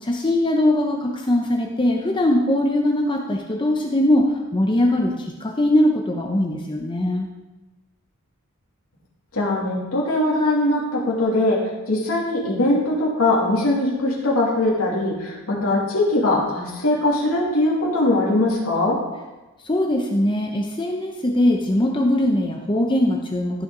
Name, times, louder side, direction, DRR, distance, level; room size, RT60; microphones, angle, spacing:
voice 1, 0.0-7.3 19.6-23.6, left 1 dB, 20° left, 2 dB, 0.7 m, -21 dB
voice 2, 9.3-11.6 11.9-18.9, left 2 dB, 75° left, -4 dB, 2.8 m, -21 dB
15.0 x 5.8 x 3.8 m, 1.1 s
head